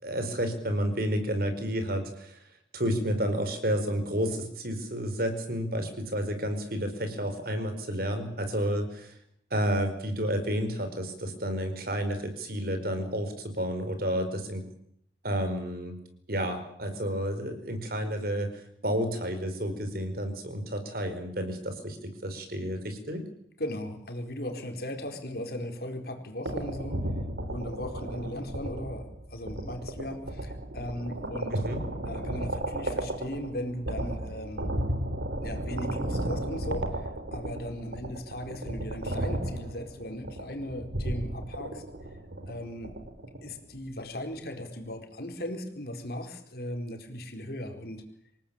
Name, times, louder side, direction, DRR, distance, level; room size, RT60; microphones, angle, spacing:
voice 1, 0.0-2.4 2.7-9.1 9.5-14.7 15.2-16.0 16.3-18.5 18.8-23.2 31.5-31.8, equal, 55° right, 8 dB, 4.8 m, -30 dB
voice 2, 23.6-27.0 27.5-31.6 32.0-34.7 35.4-41.8 42.5-42.9 43.4-48.0, left 1 dB, 55° left, 4 dB, 4.3 m, -37 dB
sound 1, 26.5-43.6, right 1 dB, 90° right, 4.0 m, -34 dB
27.0 x 18.5 x 8.9 m, 0.68 s
head